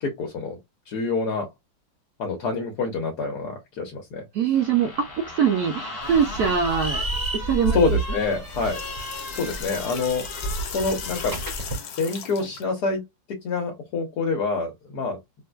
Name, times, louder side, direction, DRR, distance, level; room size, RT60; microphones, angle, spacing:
voice 1, 0.0-0.6 0.9-1.5 2.2-4.2 7.7-8.8 9.3-11.4 12.0-13.0 13.3-15.2, left 4 dB, 65° left, 1.4 m, -27 dB
voice 2, 4.3-7.0 7.3-7.8, right 7 dB, 70° right, 0.9 m, -23 dB
sound 1, 4.5-11.6, left 2 dB, 35° left, 1.4 m, -38 dB
sound 2, 6.0-11.8, right 2 dB, 15° right, 0.8 m, -31 dB
sound 3, 8.3-12.6, left 7 dB, 90° left, 1.6 m, -37 dB
3.7 x 2.6 x 2.2 m
omnidirectional pair, 2.0 m